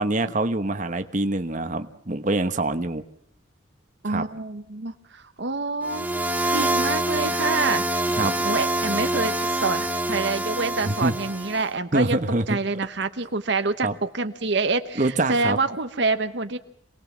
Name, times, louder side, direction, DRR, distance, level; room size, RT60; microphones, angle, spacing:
voice 1, 0.0-3.0 4.1-4.2 8.2-8.3 10.9-11.1 11.9-12.6 13.8-13.9 15.0-15.6, right 2 dB, 40° right, 8 dB, 1.1 m, -25 dB
voice 2, 4.0-6.2 6.5-8.2 8.4-12.2 12.5-16.6, right 3 dB, 60° right, 9 dB, 1.0 m, -27 dB
sound 1, 5.8-11.7, right 1 dB, 10° right, 1.0 m, -25 dB
27.0 x 19.5 x 7.3 m, 0.71 s
head